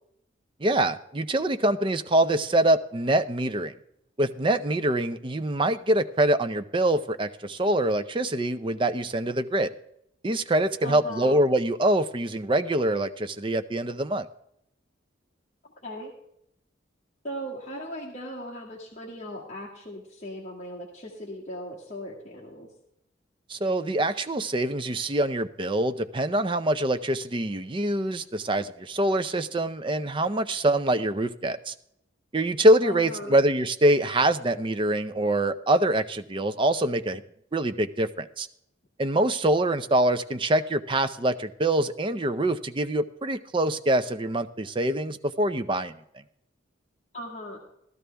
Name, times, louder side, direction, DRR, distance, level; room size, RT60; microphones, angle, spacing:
voice 1, 0.6-3.7 4.2-9.7 10.2-14.3 23.5-31.7 32.3-37.2 37.5-38.5 39.0-45.9, right 1 dB, 25° right, 10 dB, 0.5 m, -24 dB
voice 2, 10.8-11.5 15.8-16.1 17.2-22.7 32.8-33.4 47.1-47.6, equal, 35° left, -5 dB, 1.9 m, -38 dB
15.5 x 12.0 x 3.4 m, 0.75 s
head